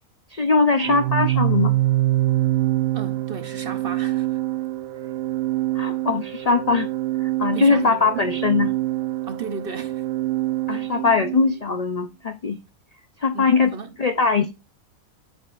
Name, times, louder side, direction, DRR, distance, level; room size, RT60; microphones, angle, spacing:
voice 1, 0.3-1.7 5.7-6.9 7.2-8.7 10.7-12.6 13.2-13.7 14.0-14.5, left 4 dB, 55° left, 0.4 m, -21 dB
Organ, 0.8-11.6, right 16 dB, 80° right, 1.0 m, -25 dB
voice 2, 2.9-4.4 7.5-8.2 9.2-10.1 10.7-10.8 13.3-13.9, right 6 dB, 50° right, 0.8 m, -34 dB
9.1 x 7.4 x 2.5 m
omnidirectional pair, 1.5 m